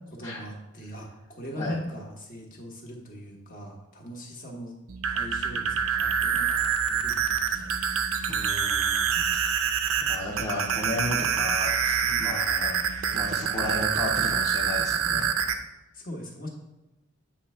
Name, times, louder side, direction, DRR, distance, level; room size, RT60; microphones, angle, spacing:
voice 1, 0.1-4.8 5.1-7.8 12.0-12.4 15.1-15.5 15.9-16.5, equal, 40° left, 0 dB, 1.3 m, -40 dB
sound 1, 4.9-15.6, right 7 dB, 65° right, 0.6 m, -26 dB
voice 2, 8.3-9.3 10.1-12.7 13.1-15.3, left 1 dB, 15° left, -5 dB, 0.9 m, -33 dB
8.3 x 3.3 x 5.5 m, 1.0 s
head